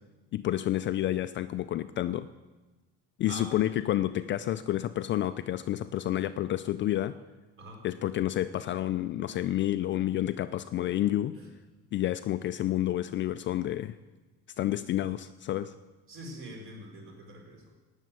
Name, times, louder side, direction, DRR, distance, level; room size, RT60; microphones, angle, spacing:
voice 1, 0.3-2.3 3.2-7.1 7.8-11.4 11.9-13.9 14.6-15.7, left 13 dB, 40° left, 12 dB, 0.4 m, -29 dB
voice 2, 3.3-3.6 7.6-7.8 11.3-11.5 16.1-17.7, right 1 dB, 40° right, 0 dB, 4.5 m, -44 dB
16.5 x 7.2 x 9.5 m, 1.2 s
cardioid pair, 155°, 31 cm